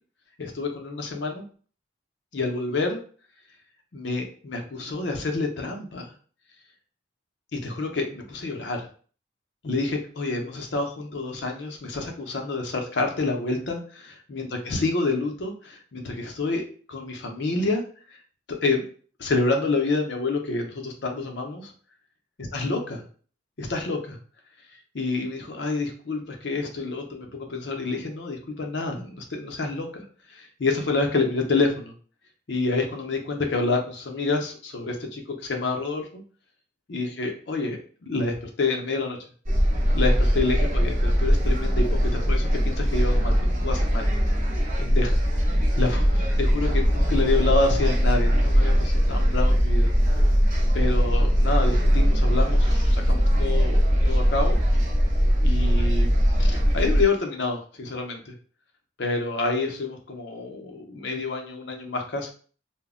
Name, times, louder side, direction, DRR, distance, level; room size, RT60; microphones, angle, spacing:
voice 1, 0.4-1.4 2.3-3.0 3.9-6.1 7.5-8.9 9.6-16.6 16.9-17.8 18.1-18.2 18.5-18.8 19.2-21.7 22.5-23.0 23.6-24.2 24.9-30.0 30.3-31.9 32.5-36.2 36.9-39.2 39.9-41.8 42.1-44.1 44.8-45.2 45.8-49.9 50.7-53.8 54.1-54.6 55.4-58.3 59.0-62.3, left 3 dB, 60° left, 3 dB, 0.5 m, -28 dB
sound 1, 39.5-57.0, equal, 40° right, 0.7 m, -21 dB
2.1 x 2.0 x 3.6 m, 0.43 s
head